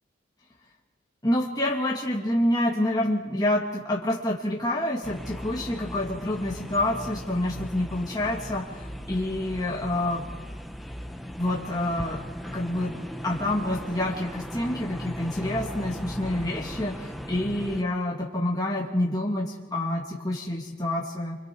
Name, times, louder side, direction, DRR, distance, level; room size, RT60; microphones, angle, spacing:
voice 1, 1.2-10.3 11.4-12.2 12.5-12.9 13.2-21.4, left 1 dB, 20° left, -3 dB, 2.1 m, -27 dB
sound 1, 5.0-17.8, equal, ahead, 0.8 m, -38 dB
29.5 x 25.5 x 4.6 m, 1.3 s
head